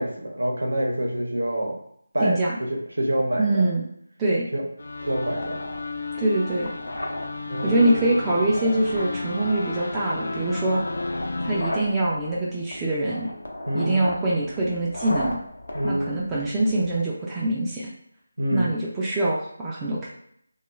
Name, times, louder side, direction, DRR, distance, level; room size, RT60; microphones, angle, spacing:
voice 1, 0.0-1.8 2.1-2.4 2.7-3.7 4.5-4.7 5.1-5.6 7.5-7.7 13.7-14.0 15.7-16.1 18.4-18.7, equal, 90° right, 1 dB, 0.7 m, -26 dB
voice 2, 2.2-2.6 3.4-3.8 4.2-4.5 6.2-6.7 7.6-10.8 11.4-13.3 13.7-15.4 15.8-17.9 18.5-20.1, right 2 dB, 10° right, -6 dB, 0.4 m, -24 dB
sound 1, 4.8-11.6, left 3 dB, 70° left, 0.3 m, -33 dB
sound 2, 5.0-17.0, left 1 dB, 85° left, 0.7 m, -36 dB
2.3 x 2.3 x 3.0 m, 0.69 s
figure-of-eight pair, 165°, 0 cm